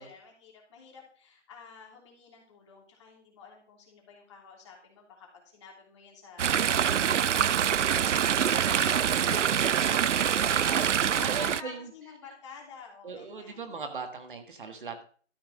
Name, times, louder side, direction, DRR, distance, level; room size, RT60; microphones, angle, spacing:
voice 1, 0.0-5.3 5.5-9.6 10.0-13.7, left 5 dB, 25° left, 0 dB, 3.1 m, -48 dB
Chatter / Stream, 6.4-11.6, right 8 dB, 80° right, 0.6 m, -25 dB
voice 2, 11.2-11.9 13.0-15.0, right 5 dB, 45° right, 6 dB, 1.6 m, -38 dB
13.5 x 5.8 x 6.4 m, 0.44 s
hypercardioid pair, 165°, 36 cm